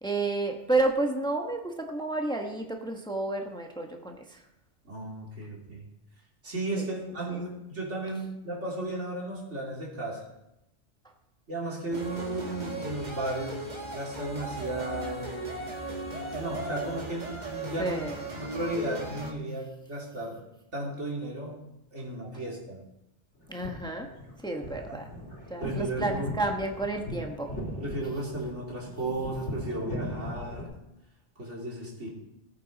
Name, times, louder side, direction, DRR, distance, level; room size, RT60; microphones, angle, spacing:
voice 1, 0.0-4.4 6.8-6.9 17.8-18.2 23.5-24.1 24.4-25.0 25.5-27.5, right 2 dB, 5° left, 2 dB, 1.3 m, -30 dB
voice 2, 4.8-5.8 6.4-10.2 11.5-13.7 13.9-15.5 16.1-18.0 18.3-20.4 20.7-21.6 21.9-22.8 24.5-25.0 25.6-26.3 27.8-30.7 31.4-32.1, right 2 dB, 85° right, -3 dB, 3.5 m, -35 dB
sound 1, 11.9-19.3, right 2 dB, 40° right, 1.8 m, -37 dB
sound 2, 23.4-30.6, equal, 80° left, 3.7 m, -38 dB
18.5 x 8.9 x 4.1 m, 0.90 s
omnidirectional pair, 1.2 m